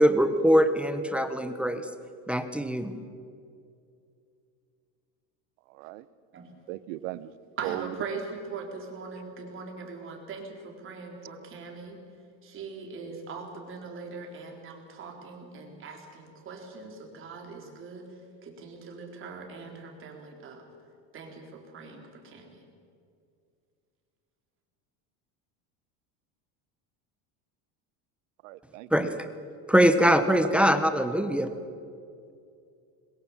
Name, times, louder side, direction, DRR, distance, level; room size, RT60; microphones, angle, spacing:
voice 1, 0.0-1.8 2.3-2.9 28.9-29.3 29.7-31.5, equal, 5° right, 9 dB, 0.9 m, -22 dB
voice 2, 6.7-7.3 7.6-7.8 28.4-29.2, right 17 dB, 85° right, 16 dB, 1.0 m, -37 dB
voice 3, 7.6-12.0 12.4-20.6 21.1-22.6, right 4 dB, 35° right, 1 dB, 4.0 m, -41 dB
22.0 x 20.5 x 7.4 m, 2.4 s
cardioid pair, 160°, 37 cm